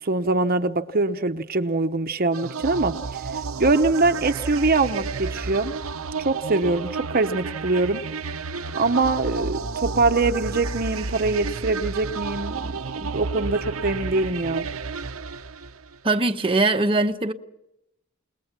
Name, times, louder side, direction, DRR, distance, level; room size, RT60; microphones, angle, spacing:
voice 1, 0.0-2.9 3.6-5.7 6.2-8.0 8.7-14.7, right 3 dB, 45° right, 1.0 m, -23 dB
sound 1, 2.3-16.0, right 4 dB, 85° right, 0.9 m, -31 dB
voice 2, 16.0-17.3, right 2 dB, 25° right, 1.0 m, -21 dB
29.0 x 20.0 x 6.0 m
head